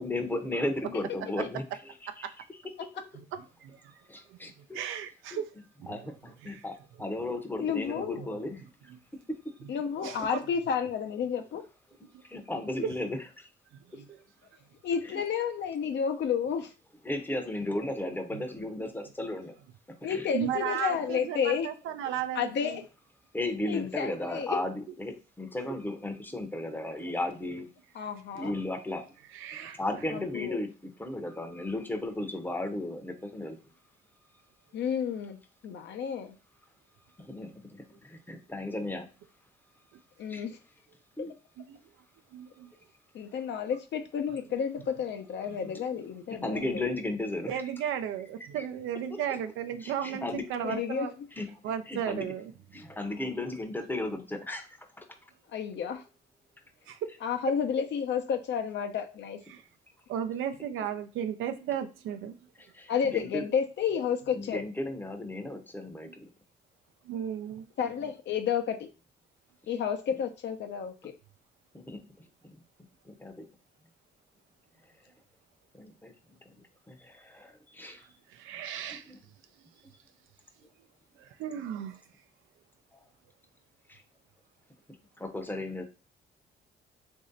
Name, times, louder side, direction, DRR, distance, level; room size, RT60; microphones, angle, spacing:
voice 1, 0.0-2.3 4.1-4.8 5.3-5.4 5.9-8.7 9.3-9.5 12.2-13.5 15.1-15.2 17.0-19.6 20.1-20.2 23.3-24.7 25.0-27.7 28.3-29.1 29.6-30.7 31.0-33.6 37.2-39.1 40.3-40.5 41.2-41.3 45.6-45.8 46.3-47.6 48.5-48.7 49.8-50.4 50.7-50.8 51.4-51.5 51.9-52.3 52.7-55.1 62.6-63.4 64.3-66.3 71.7-72.2 72.5-72.6 73.0-73.4 75.7-76.1 76.4-76.5 76.9-78.2 78.9-79.2 79.8-79.9 82.9-83.0 83.9-84.0 85.2-85.9, left 2 dB, 10° left, 0.7 m, -35 dB
voice 2, 3.1-4.0 4.3-5.5 5.8-6.1 6.4-6.6 8.2-8.3 9.6-9.7 10.0-10.2 12.1-12.2 12.8-12.9 13.7-14.2 18.3-18.4 18.8-18.9 20.3-22.8 29.3-29.8 41.6-41.8 42.3-42.7 47.5-51.1 51.6-52.5 56.9-57.1 59.5-59.6 60.1-62.4 66.1-66.2 67.0-67.7 77.9-78.0 78.3-79.1 81.2-82.0, right 9 dB, 85° right, 0.5 m, -35 dB
voice 3, 7.6-8.4 9.7-11.6 14.8-16.7 20.0-21.7 22.3-22.8 23.6-24.6 27.9-28.5 30.1-30.6 34.7-36.4 40.2-40.6 43.1-46.8 50.6-51.1 55.5-56.0 57.2-59.4 62.9-64.6 67.8-68.9 69.7-71.1, left 7 dB, 65° left, 0.6 m, -31 dB
3.1 x 2.7 x 3.8 m
cardioid pair, 90°, 20 cm